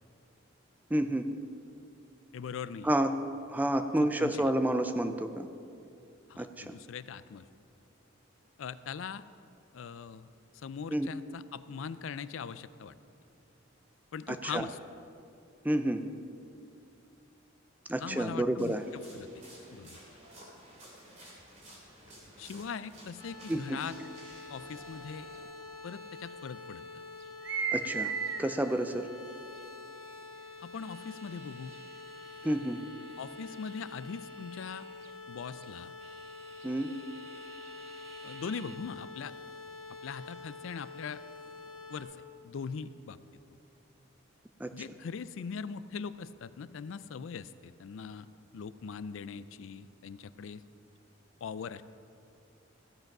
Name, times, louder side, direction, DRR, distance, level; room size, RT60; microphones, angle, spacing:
voice 1, 0.9-1.3 2.8-3.1 3.5-5.5 6.4-6.7 10.9-11.1 14.3-14.7 15.6-16.0 17.9-18.8 23.5-23.8 27.7-28.1 28.4-29.1 32.4-32.8 36.6-36.9 44.6-44.7, right 1 dB, 10° right, 8 dB, 0.4 m, -29 dB
voice 2, 2.3-2.9 4.0-4.5 6.3-7.4 8.6-9.2 9.7-10.3 10.6-12.9 14.1-14.8 18.0-19.3 19.7-20.0 22.4-24.0 24.5-25.3 25.8-26.8 30.6-31.7 33.2-34.9 35.3-35.9 38.2-39.3 40.0-41.2 41.9-42.2 42.4-43.2 44.7-48.3 48.5-50.6 51.4-51.8, left 6 dB, 75° left, 15 dB, 0.4 m, -41 dB
sound 1, 18.6-25.4, right 1 dB, 35° right, 2.9 m, -53 dB
sound 2, 23.2-42.0, left 3 dB, 25° left, 2.1 m, -47 dB
sound 3, 25.3-25.4 26.2-26.3 27.2-28.4 29.6-29.7 30.8-35.1 35.6-35.7 36.0-38.8, right 5 dB, 65° right, 0.8 m, -41 dB
15.0 x 7.8 x 5.9 m, 2.6 s
head